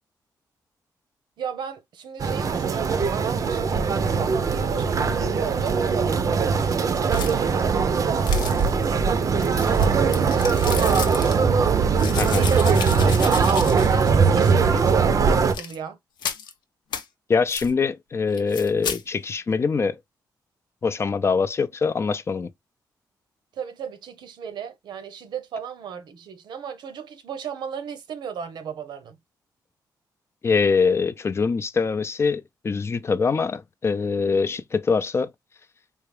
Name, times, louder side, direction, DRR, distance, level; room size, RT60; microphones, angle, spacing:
voice 1, 1.4-5.9 6.7-8.6 9.0-11.5 12.0-16.0 23.5-29.2, right 7 dB, 80° right, 0.8 m, -35 dB
sound 1, 2.2-15.5, right 5 dB, 50° right, 0.5 m, -21 dB
sound 2, 7.1-7.6 8.2-8.9 9.4-11.4 12.0-14.1 14.4-14.5 15.4-15.8 16.2-16.5 16.9-17.0 17.5-17.7 18.3-19.0, left 7 dB, 90° left, 0.8 m, -33 dB
voice 2, 17.3-20.0 20.8-22.5 30.4-35.3, left 5 dB, 35° left, 0.4 m, -23 dB
3.5 x 2.3 x 3.3 m
cardioid pair, 100°, 8 cm